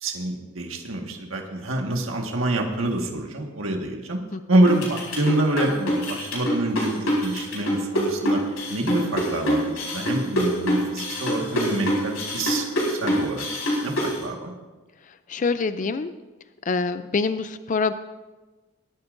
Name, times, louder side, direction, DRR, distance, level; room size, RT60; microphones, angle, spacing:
voice 1, 0.0-4.2 4.5-13.5 13.8-14.5, right 1 dB, 75° right, 1 dB, 1.7 m, -26 dB
sound 1, 4.7-14.2, equal, 80° left, 4.7 m, -25 dB
voice 2, 15.3-16.1 16.7-17.9, left 4 dB, 40° left, 11 dB, 0.4 m, -25 dB
22.0 x 12.5 x 2.6 m, 1.2 s
head